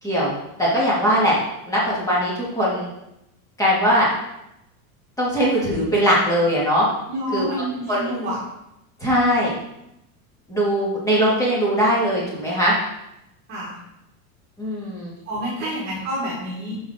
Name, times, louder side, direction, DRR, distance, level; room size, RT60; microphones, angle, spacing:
voice 1, 0.0-0.3 0.6-1.4 1.7-2.9 3.6-4.1 5.2-6.9 7.3-7.5 7.9-8.1 9.0-9.5 10.5-12.8 14.6-15.1, equal, 5° left, -7 dB, 2.3 m, -20 dB
voice 2, 7.1-8.4 13.5-13.8 15.3-16.8, equal, 25° right, -6 dB, 2.0 m, -28 dB
6.0 x 5.5 x 5.0 m, 0.85 s
supercardioid pair, 165°, 43 cm